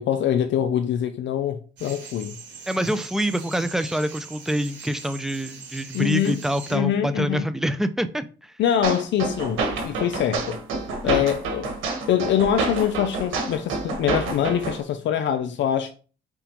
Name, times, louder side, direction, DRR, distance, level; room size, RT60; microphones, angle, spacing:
voice 1, 0.0-2.4 5.9-6.4 6.7-7.4 8.6-10.6 11.0-11.7 12.1-15.9, left 9 dB, 65° left, 0.4 m, -24 dB
sound 1, 1.8-6.8, right 6 dB, 65° right, 1.7 m, -41 dB
voice 2, 2.7-8.5 11.0-11.2, equal, ahead, 0.4 m, -26 dB
sound 2, 8.8-14.8, right 3 dB, 85° right, 1.3 m, -28 dB
4.9 x 3.5 x 2.9 m
cardioid pair, 90°, 20 cm